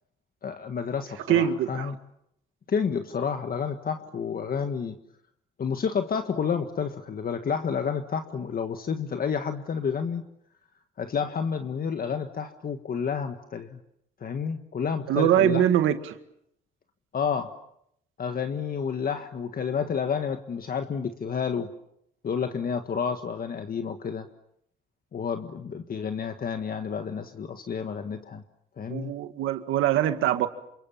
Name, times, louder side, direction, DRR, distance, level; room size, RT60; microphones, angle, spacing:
voice 1, 0.4-2.0 2.7-4.9 5.6-10.2 11.0-13.8 14.2-15.7 17.1-17.5 18.2-21.7 22.2-24.3 25.1-28.4 28.8-29.1, left 6 dB, 50° left, 1.6 m, -30 dB
voice 2, 1.3-1.9 15.1-16.2 28.9-30.5, right 11 dB, 85° right, 2.0 m, -23 dB
28.0 x 26.5 x 7.1 m
cardioid pair, 90°, 20 cm